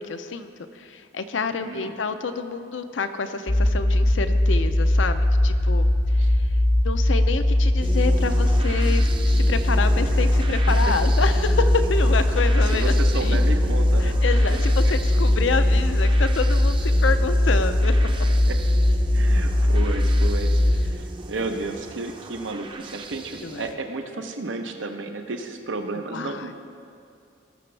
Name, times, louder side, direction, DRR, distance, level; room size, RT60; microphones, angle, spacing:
voice 1, 0.0-5.9 6.3-6.4 6.8-13.4 14.0-17.9 21.6-21.7 23.4-23.7 26.1-26.5, left 4 dB, 85° left, 9 dB, 0.6 m, -28 dB
voice 2, 1.6-1.9 6.2-6.3 10.1-10.3 10.9-11.0 12.6-14.4 18.5-18.6 19.1-26.5, right 3 dB, 85° right, 5 dB, 0.8 m, -32 dB
sound 1, 3.5-20.9, left 1 dB, 25° left, 0.5 m, -20 dB
sound 2, 7.8-23.8, right 2 dB, 25° right, 0.6 m, -37 dB
18.5 x 6.8 x 3.3 m, 2.5 s
head